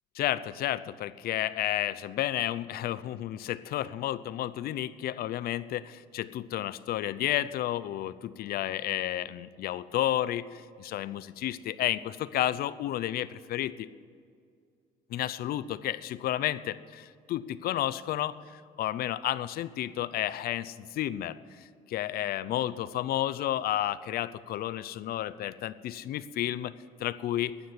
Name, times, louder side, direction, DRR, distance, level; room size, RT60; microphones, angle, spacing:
voice 1, 0.1-13.9 15.1-18.3 18.8-26.7 27.0-27.5, left 13 dB, 65° left, 16 dB, 0.6 m, -31 dB
11.5 x 9.5 x 8.1 m, 2.2 s
cardioid pair, 110°, 17 cm